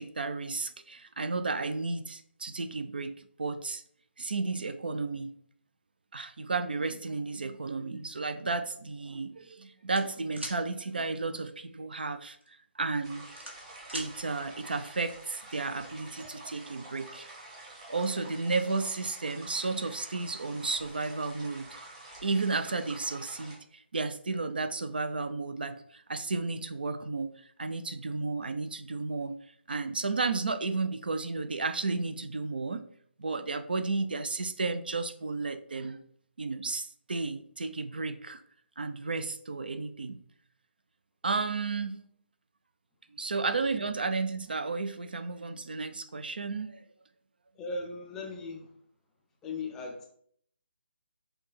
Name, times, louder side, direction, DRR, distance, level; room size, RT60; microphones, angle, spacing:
voice 1, 0.0-3.1 3.4-3.8 4.2-5.3 6.1-12.4 12.8-13.3 13.9-17.3 17.9-21.8 22.2-29.4 29.7-32.8 33.2-36.0 36.4-38.4 38.8-40.2 41.2-42.0 43.2-46.8, right 3 dB, 55° right, 10 dB, 0.4 m, -33 dB
sound 1, 9.9-10.6 12.2-12.5 12.9-14.1, equal, 75° right, 1.3 m, -40 dB
sound 2, 13.0-23.6, right 2 dB, 25° right, 1.1 m, -48 dB
voice 2, 47.5-48.7 49.4-50.1, left 3 dB, 5° left, 0 dB, 0.4 m, -38 dB
5.6 x 2.2 x 4.1 m, 0.62 s
figure-of-eight pair, 150°, 6 cm